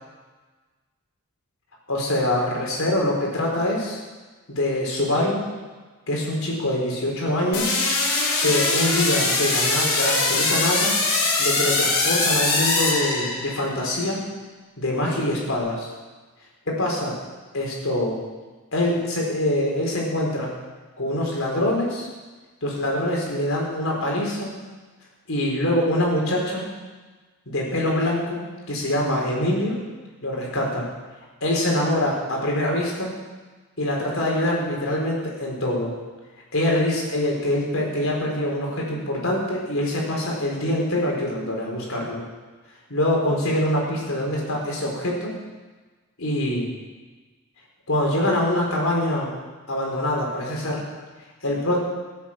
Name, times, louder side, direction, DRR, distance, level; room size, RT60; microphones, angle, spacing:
voice 1, 1.9-4.0 4.5-5.4 6.1-7.9 8.4-10.9 11.4-14.2 14.8-15.9 16.7-17.2 17.5-18.2 18.7-20.5 21.0-22.1 22.6-24.5 25.3-26.6 27.5-29.8 30.2-30.9 31.4-33.1 33.8-35.9 36.5-42.2 42.9-45.3 46.2-46.7 47.9-49.3 49.7-50.8 51.4-51.8, left 1 dB, 75° left, -2 dB, 4.3 m, -24 dB
sound 1, 7.5-13.7, left 3 dB, 90° left, 3.8 m, -22 dB
16.5 x 8.6 x 7.4 m, 1.3 s
head